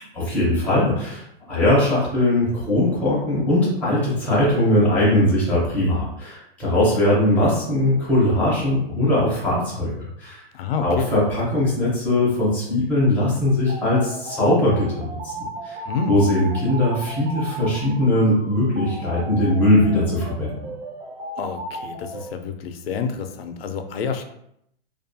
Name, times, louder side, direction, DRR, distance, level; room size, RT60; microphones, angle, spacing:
voice 1, 0.2-1.2 1.5-9.9 10.2-10.4 10.8-15.8 16.1-20.5, left 1 dB, 5° left, -8 dB, 0.5 m, -20 dB
voice 2, 10.5-11.1 15.9-16.2 21.4-24.2, left 5 dB, 70° left, 7 dB, 0.4 m, -28 dB
sound 1, 13.7-22.3, right 1 dB, 85° right, 0.7 m, -35 dB
2.4 x 2.3 x 2.6 m, 0.74 s
hypercardioid pair, 155°, 31 cm